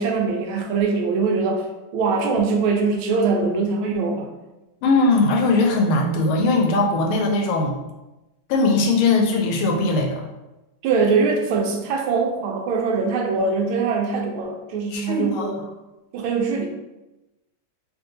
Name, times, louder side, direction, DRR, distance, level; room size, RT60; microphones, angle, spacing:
voice 1, 0.0-1.7 1.9-4.3 10.8-15.6 16.1-16.7, right 4 dB, 80° right, 2 dB, 1.4 m, -22 dB
voice 2, 4.8-7.8 8.5-10.2 14.9-15.5, left 3 dB, 85° left, 2 dB, 1.5 m, -20 dB
3.8 x 2.6 x 3.8 m, 1.0 s
omnidirectional pair, 2.4 m